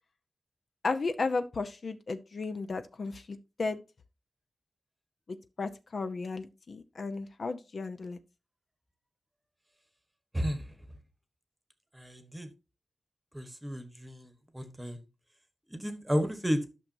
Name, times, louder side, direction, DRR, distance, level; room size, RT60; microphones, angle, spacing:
voice 1, 0.8-3.8 5.6-8.2, left 3 dB, 55° left, 0.7 m, -34 dB
voice 2, 10.3-10.8 11.9-12.5 13.3-15.0 15.7-16.6, equal, 10° right, 1.1 m, -33 dB
12.0 x 6.1 x 2.6 m
wide cardioid pair, 150°, 0 cm